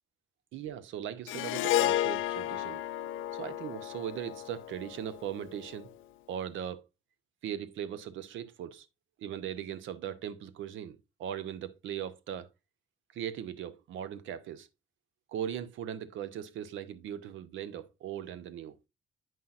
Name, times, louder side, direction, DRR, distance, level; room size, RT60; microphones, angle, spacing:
voice 1, 0.5-2.8 3.3-5.9 6.3-6.8 7.4-8.9 9.2-12.5 13.1-14.7 15.3-18.7, right 10 dB, 80° right, 0.7 m, -39 dB
Harp, 1.3-5.7, left 13 dB, 85° left, 0.5 m, -32 dB
9.1 x 5.6 x 2.4 m
cardioid pair, 90°, 20 cm